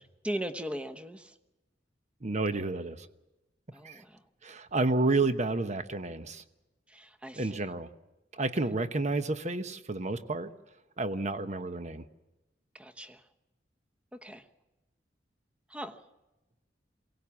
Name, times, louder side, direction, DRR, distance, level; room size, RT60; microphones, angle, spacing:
voice 1, 0.0-1.3 3.7-4.2 6.9-7.6 12.7-13.2 14.2-14.5 15.7-16.0, equal, 5° right, 9 dB, 1.0 m, -39 dB
voice 2, 2.2-3.1 3.8-4.0 4.4-6.4 7.3-7.9 8.3-10.5 11.0-12.1, right 2 dB, 40° right, 11 dB, 1.0 m, -30 dB
23.0 x 18.0 x 7.2 m, 1.0 s
head